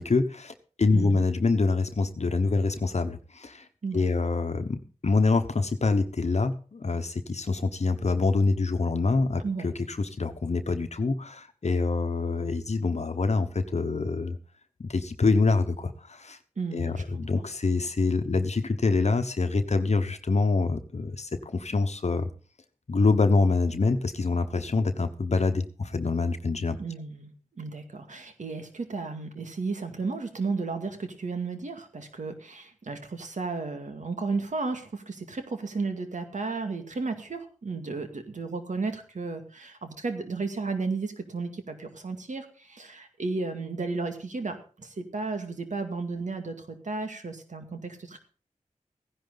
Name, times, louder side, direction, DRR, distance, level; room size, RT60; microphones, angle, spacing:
voice 1, 0.0-3.7 3.9-14.4 14.8-16.4 16.7-22.3 22.9-26.8, left 3 dB, 55° left, 8 dB, 1.1 m, -26 dB
voice 2, 0.9-1.2 3.8-4.1 9.4-9.7 16.6-17.2 26.8-48.2, right 4 dB, 70° right, 6 dB, 2.2 m, -33 dB
15.5 x 10.5 x 4.0 m, 0.37 s
wide cardioid pair, 60°, 13 cm